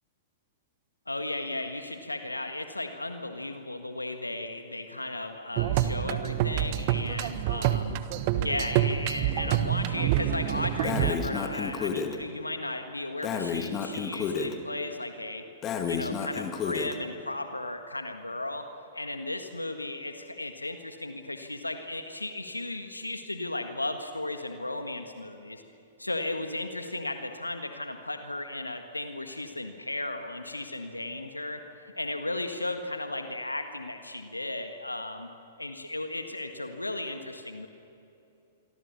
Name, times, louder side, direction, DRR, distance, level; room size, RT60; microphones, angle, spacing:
voice 1, 1.1-8.0 8.4-15.4 15.8-18.7 18.9-25.6 26.0-31.6 32.0-35.3 35.6-37.7, left 2 dB, 90° left, 6 dB, 1.7 m, -35 dB
sound 1, 5.6-11.1, right 12 dB, 45° right, 1.3 m, -27 dB
Breathing, 10.8-12.1 13.2-14.5 15.6-17.0, left 6 dB, 30° left, 2.2 m, -31 dB
27.0 x 24.0 x 7.1 m, 2.9 s
figure-of-eight pair, 105°, 0 cm